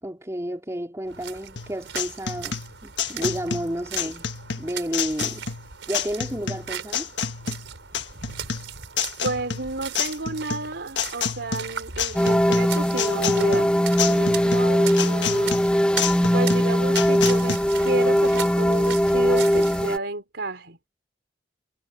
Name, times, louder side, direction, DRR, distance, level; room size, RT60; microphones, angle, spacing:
voice 1, 0.0-4.3 4.6-5.4 5.9-7.1, equal, 15° right, 3.7 m, -31 dB
sound 1, 1.1-19.9, right 8 dB, 90° right, 4.5 m, -38 dB
sound 2, 1.6-17.6, left 7 dB, 70° left, 1.5 m, -29 dB
voice 2, 9.2-15.6 16.3-20.8, right 2 dB, 70° right, 4.0 m, -31 dB
sound 3, 12.1-20.0, equal, 5° left, 0.9 m, -20 dB
head